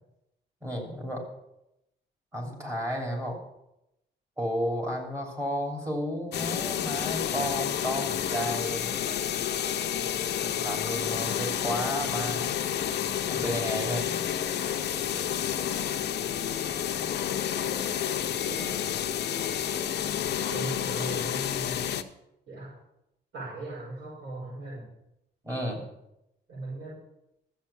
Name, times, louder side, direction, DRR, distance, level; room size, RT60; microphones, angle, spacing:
voice 1, 0.6-1.2 2.3-3.4 4.4-9.0 10.4-12.7 13.3-14.2 25.4-25.8, equal, 15° right, 0 dB, 3.0 m, -32 dB
sound 1, 6.3-22.0, left 9 dB, 65° left, 0.8 m, -30 dB
voice 2, 20.4-21.8 22.5-22.7 23.3-24.9 26.5-27.0, right 2 dB, 85° right, -8 dB, 6.2 m, -38 dB
13.0 x 7.9 x 7.0 m, 0.86 s
wide cardioid pair, 180°, 19 cm